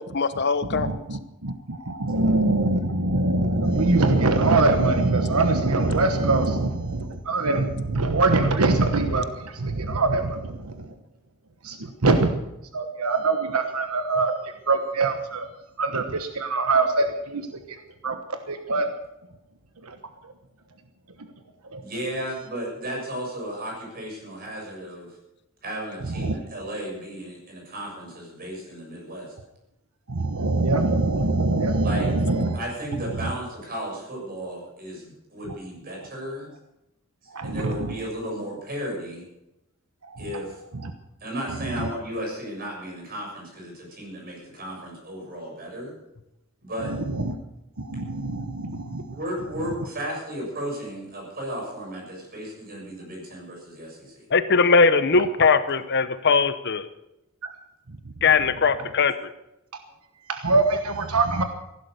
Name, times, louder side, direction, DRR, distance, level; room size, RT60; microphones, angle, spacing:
voice 1, 0.0-0.9 54.3-56.9 58.2-59.3, left 4 dB, 50° left, 12 dB, 0.8 m, -20 dB
voice 2, 0.7-10.8 11.6-11.8 12.0-12.4 12.7-14.3 14.7-15.5 15.8-17.5 18.0-18.2 18.5-18.9 19.8-19.9 21.7-21.8 26.2-26.4 30.1-32.6 37.3-37.9 41.8-41.9 47.2-47.3 47.8-49.0 60.3-61.4, right 3 dB, 85° right, 7 dB, 1.2 m, -23 dB
voice 3, 21.8-25.2 25.6-29.4 31.8-32.1 32.5-36.5 37.2-39.3 40.2-40.6 41.2-46.0 46.6-47.0 49.1-54.3, equal, 45° right, -1 dB, 7.1 m, -34 dB
15.5 x 11.5 x 6.7 m, 0.88 s
head